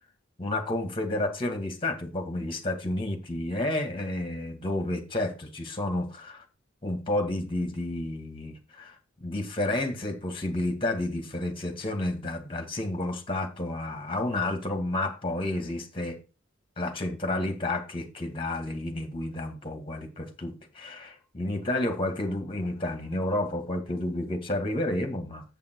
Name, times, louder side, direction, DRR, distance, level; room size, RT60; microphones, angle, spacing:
voice 1, 0.4-6.4 6.8-8.9 9.2-16.2 16.8-25.4, left 1 dB, 25° left, 2.1 m, -31 dB
7.6 x 7.0 x 4.7 m
head